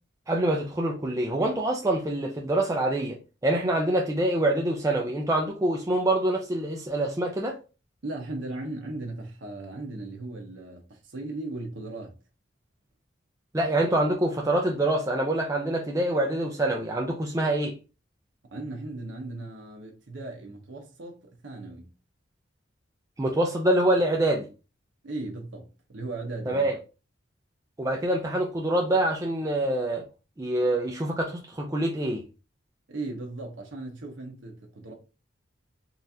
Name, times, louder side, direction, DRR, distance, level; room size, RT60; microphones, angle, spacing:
voice 1, 0.3-7.6 13.5-17.8 23.2-24.5 26.5-26.8 27.8-30.0 30.4-32.2, right 1 dB, 15° right, 0.4 m, -25 dB
voice 2, 8.0-12.1 18.5-21.9 25.0-26.7 32.9-34.9, right 2 dB, 70° right, 0.8 m, -37 dB
3.9 x 2.4 x 2.7 m
head